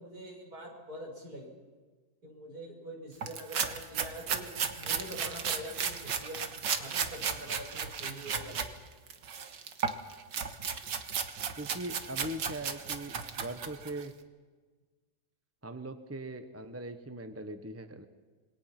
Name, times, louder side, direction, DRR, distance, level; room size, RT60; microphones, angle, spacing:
voice 1, 0.0-1.5 2.2-6.5 6.7-8.6, equal, 60° right, -1 dB, 6.8 m, -45 dB
sound 1, 3.2-8.7 9.1-14.0, right 6 dB, 80° right, 2.0 m, -35 dB
voice 2, 11.6-14.1 15.6-18.1, right 1 dB, 10° right, 9 dB, 0.9 m, -40 dB
27.0 x 21.5 x 6.1 m, 1.4 s
omnidirectional pair, 1.9 m